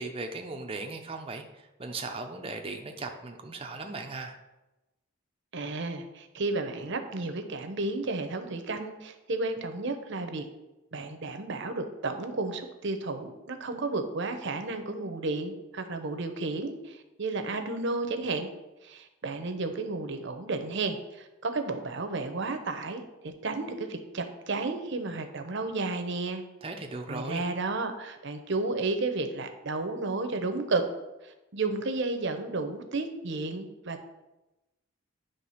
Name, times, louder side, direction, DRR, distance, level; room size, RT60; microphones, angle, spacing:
voice 1, 0.0-4.3 26.6-27.4, right 3 dB, 25° right, 3 dB, 0.6 m, -37 dB
voice 2, 5.5-10.4 10.9-18.5 18.8-26.4 27.1-30.8 31.2-34.0, right 3 dB, 55° right, 7 dB, 0.8 m, -32 dB
9.3 x 3.4 x 5.6 m, 1.0 s
head